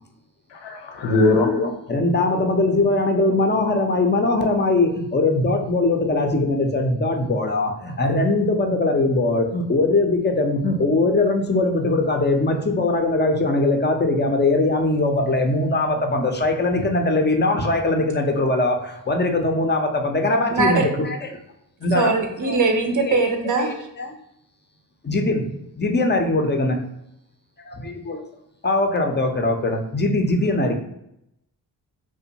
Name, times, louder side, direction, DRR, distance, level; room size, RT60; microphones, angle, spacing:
voice 1, 0.6-1.5, left 2 dB, 70° left, 2 dB, 0.6 m, -19 dB
voice 2, 1.4-21.3 21.8-22.1 22.4-22.6 23.1-23.2 23.6-24.1 25.0-25.5 25.8-26.8 27.8-28.2 28.6-30.7, left 2 dB, 25° left, 3 dB, 0.5 m, -21 dB
voice 3, 20.5-20.9 21.9-23.8, right 3 dB, 45° right, 4 dB, 0.5 m, -21 dB
2.5 x 2.1 x 2.8 m, 0.79 s
supercardioid pair, 45°, 45 cm